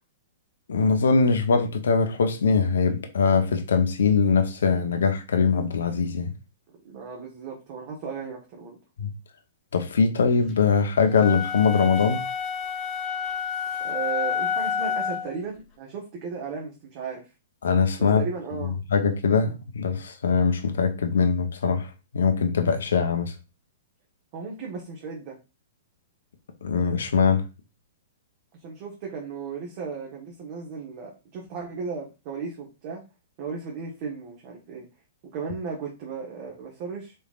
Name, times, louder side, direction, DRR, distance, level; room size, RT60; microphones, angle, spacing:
voice 1, 0.7-6.3 9.0-9.1 9.7-12.2 17.6-18.2 18.6-23.3 26.6-27.4, left 5 dB, 75° left, 0.8 m, -22 dB
voice 2, 6.8-8.8 13.8-17.2 18.0-18.8 24.3-25.4 28.6-33.0 33.4-34.9 35.3-37.1, right 5 dB, 45° right, 1.1 m, -35 dB
sound 1, 11.1-15.4, left 7 dB, 30° left, 1.1 m, -29 dB
4.3 x 3.4 x 2.4 m
hypercardioid pair, 120°, 0 cm